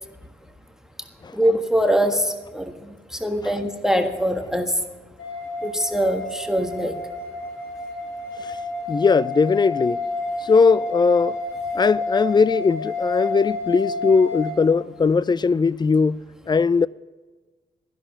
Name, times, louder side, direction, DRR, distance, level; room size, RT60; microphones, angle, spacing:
voice 1, 1.3-4.7 5.6-7.0, equal, ahead, 1.5 m, -23 dB
sound 1, 5.2-14.5, left 2 dB, 60° left, 3.9 m, -30 dB
voice 2, 8.9-10.0 10.4-11.4 11.7-16.2 16.5-16.9, left 5 dB, 20° left, 0.4 m, -19 dB
13.5 x 11.0 x 7.0 m
hypercardioid pair, 45°, 21 cm